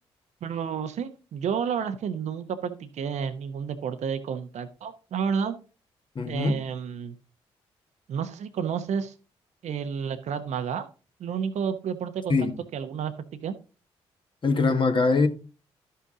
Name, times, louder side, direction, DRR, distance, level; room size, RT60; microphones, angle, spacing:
voice 1, 0.4-5.6 6.3-7.1 8.1-9.1 9.6-10.9 11.2-13.6, right 7 dB, 60° right, 0.9 m, -31 dB
voice 2, 6.1-6.5 12.3-12.5 14.4-15.3, left 4 dB, 40° left, 1.5 m, -22 dB
12.0 x 5.7 x 3.7 m
hypercardioid pair, 45°, 13 cm